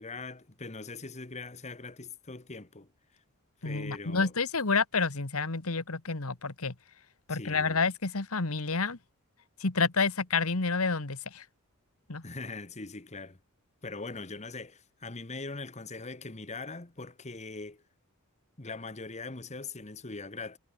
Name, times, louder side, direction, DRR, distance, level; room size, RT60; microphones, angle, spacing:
voice 1, 0.0-3.2 3.6-4.3 7.3-7.8 12.2-13.4 13.8-17.8 18.6-20.6, left 3 dB, 30° left, 1.4 m, -41 dB
voice 2, 3.6-6.7 7.3-9.0 9.6-11.4 12.1-12.2, left 4 dB, 75° left, 1.7 m, -29 dB
head